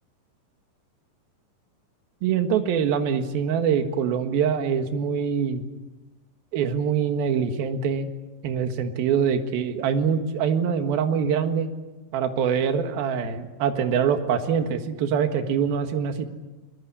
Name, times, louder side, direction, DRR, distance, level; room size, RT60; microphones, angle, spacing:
voice 1, 2.2-5.6 6.5-8.1 8.4-11.7 12.1-16.3, right 7 dB, 65° right, 6 dB, 3.2 m, -24 dB
23.0 x 22.5 x 8.5 m, 1.1 s
omnidirectional pair, 5.0 m